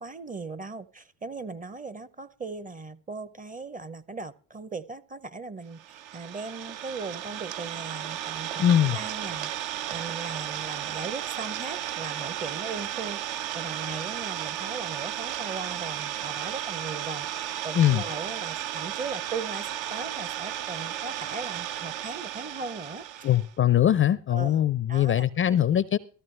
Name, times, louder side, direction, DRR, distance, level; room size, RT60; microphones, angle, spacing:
voice 1, 0.0-23.4 24.3-24.5 24.9-25.2, right 4 dB, 20° right, 0.6 m, -38 dB
Idling, 5.8-23.5, right 11 dB, 70° right, 0.9 m, -34 dB
voice 2, 8.6-9.0 17.8-18.0 23.2-26.0, left 11 dB, 30° left, 0.4 m, -22 dB
14.0 x 13.5 x 3.3 m
hypercardioid pair, 75°, 46 cm